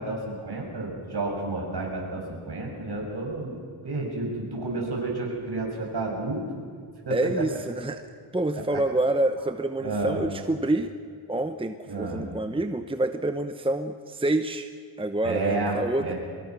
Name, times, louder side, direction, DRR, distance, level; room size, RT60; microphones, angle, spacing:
voice 1, 0.0-3.5 3.8-6.4 7.1-7.4 8.7-8.8 9.8-10.2 11.9-12.2 15.2-16.1, right 2 dB, 55° right, 0 dB, 6.9 m, -30 dB
voice 2, 7.1-8.0 8.3-10.9 11.3-14.7 15.0-16.1, right 2 dB, 10° right, 8 dB, 1.0 m, -27 dB
24.5 x 22.0 x 6.1 m, 2.1 s
cardioid pair, 75°, 48 cm